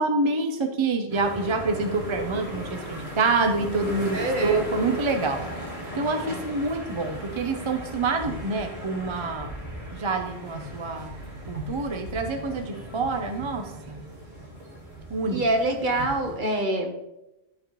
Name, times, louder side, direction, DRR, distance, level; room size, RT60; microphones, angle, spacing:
voice 1, 0.0-5.4 5.9-9.5 9.9-11.1 11.5-14.0 15.1-15.4, right 3 dB, 35° right, 5 dB, 0.5 m, -27 dB
sound 1, 1.1-16.4, equal, 75° right, 2.0 m, -37 dB
voice 2, 4.1-4.6 15.3-16.9, right 1 dB, 50° right, 2 dB, 1.2 m, -25 dB
11.5 x 4.2 x 3.0 m, 0.94 s
omnidirectional pair, 1.1 m